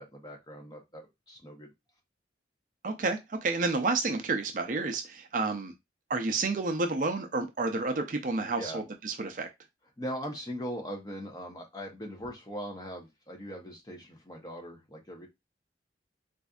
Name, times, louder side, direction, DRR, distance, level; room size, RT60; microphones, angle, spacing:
voice 1, 0.0-1.7 8.6-8.8 10.0-15.3, equal, 20° left, 0.9 m, -40 dB
voice 2, 2.8-5.7 6.1-9.5, right 3 dB, 45° right, 0.5 m, -30 dB
4.1 x 2.6 x 2.4 m
head